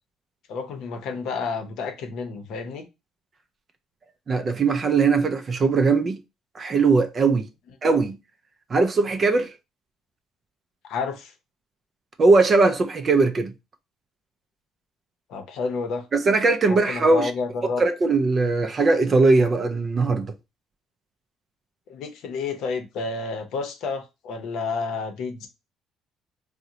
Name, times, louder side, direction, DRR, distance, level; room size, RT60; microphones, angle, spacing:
voice 1, 0.5-2.9 10.8-11.3 15.3-16.0 16.7-17.8 21.9-25.5, left 4 dB, 65° left, 0.7 m, -30 dB
voice 2, 4.3-6.2 6.6-7.5 7.8-8.2 8.7-9.5 12.2-13.5 16.1-17.3 17.8-20.3, right 3 dB, 25° right, 0.3 m, -20 dB
3.7 x 2.1 x 2.8 m
cardioid pair, 170°, 0 cm